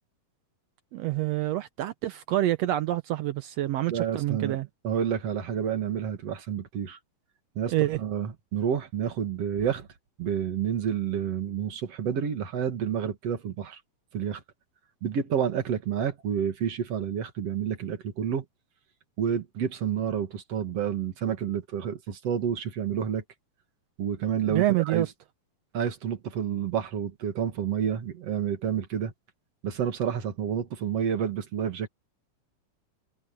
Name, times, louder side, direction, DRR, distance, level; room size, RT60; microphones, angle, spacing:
voice 1, 0.9-4.7 7.7-8.0 24.5-25.1, right 14 dB, 80° right, 1.5 m, -27 dB
voice 2, 3.9-4.6 4.8-7.0 7.6-9.9 10.2-13.8 14.1-14.4 15.0-18.4 19.2-23.2 24.0-25.1 25.7-29.1 29.6-31.9, right 8 dB, 55° right, 2.8 m, -29 dB
omnidirectional pair, 3.8 m